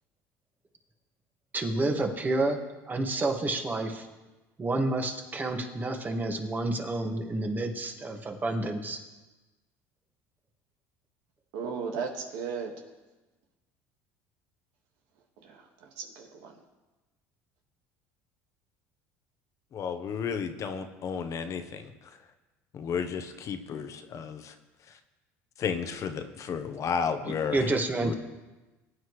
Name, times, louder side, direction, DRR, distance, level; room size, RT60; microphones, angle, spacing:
voice 1, 1.5-2.6 2.9-4.1 4.6-9.0 27.2-28.1, right 2 dB, 25° right, 3 dB, 1.9 m, -29 dB
voice 2, 11.5-12.7 15.4-16.5, right 6 dB, 75° right, 2 dB, 1.9 m, -36 dB
voice 3, 19.7-21.9 22.7-24.5 25.6-27.6 28.0-28.1, left 6 dB, 50° left, 8 dB, 1.1 m, -32 dB
20.5 x 9.4 x 3.3 m, 1.1 s
supercardioid pair, 90°, 7 cm